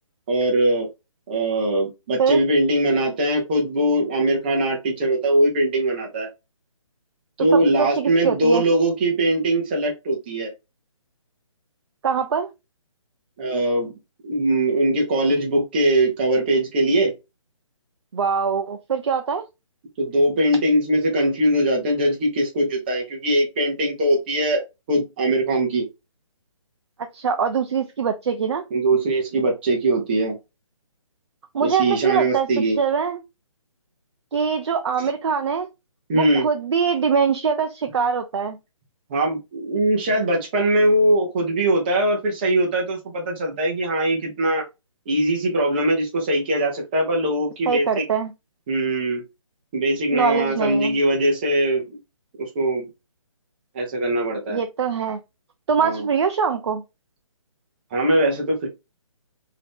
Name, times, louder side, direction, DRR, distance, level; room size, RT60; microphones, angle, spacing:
voice 1, 0.3-0.9 1.3-6.3 7.4-10.5 13.4-13.9 14.2-17.1 20.0-24.6 24.9-25.8 28.7-30.4 31.6-32.8 36.1-36.5 39.1-44.6 45.1-48.1 48.7-49.2 49.7-52.0 52.4-52.9 53.7-54.6 55.8-56.1 57.9-58.7, right 1 dB, 20° right, 0.7 m, -21 dB
voice 2, 7.5-8.6 12.0-12.5 18.1-19.5 27.1-28.6 31.5-32.5 32.8-33.2 34.3-35.7 36.1-38.6 47.7-48.3 50.1-50.9 54.5-55.2 55.7-56.8, right 6 dB, 55° right, 0.4 m, -23 dB
2.8 x 2.4 x 3.4 m
hypercardioid pair, 165°, 17 cm